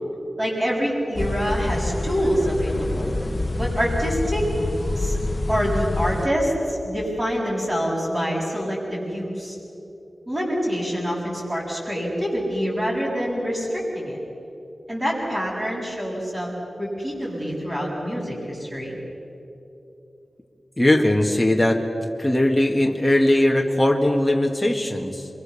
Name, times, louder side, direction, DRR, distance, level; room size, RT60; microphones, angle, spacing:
voice 1, 0.4-3.1 3.6-4.5 5.0-5.2 5.5-9.6 10.3-14.2 14.9-19.0, equal, 25° right, -8 dB, 7.2 m, -26 dB
sound 1, 1.2-6.3, left 2 dB, 40° left, 1.1 m, -27 dB
voice 2, 20.8-21.9 22.2-25.3, left 1 dB, 10° left, 1 dB, 1.8 m, -19 dB
27.5 x 23.5 x 7.1 m, 2.9 s
wide cardioid pair, 75°, 0 cm